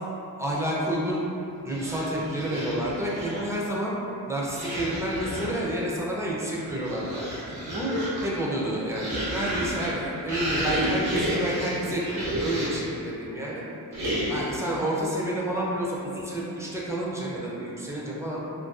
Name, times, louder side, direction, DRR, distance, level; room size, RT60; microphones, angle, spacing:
voice 1, 0.4-1.3 1.6-3.9 4.3-7.3 7.7-7.9 8.2-13.6 14.3-18.4, right 1 dB, 10° right, -5 dB, 0.5 m, -29 dB
sound 1, 1.7-3.6 4.5-5.7 6.4-12.9 13.9-14.6, equal, 75° right, 0.8 m, -31 dB
2.5 x 2.2 x 2.4 m, 2.7 s
cardioid pair, 70°, 37 cm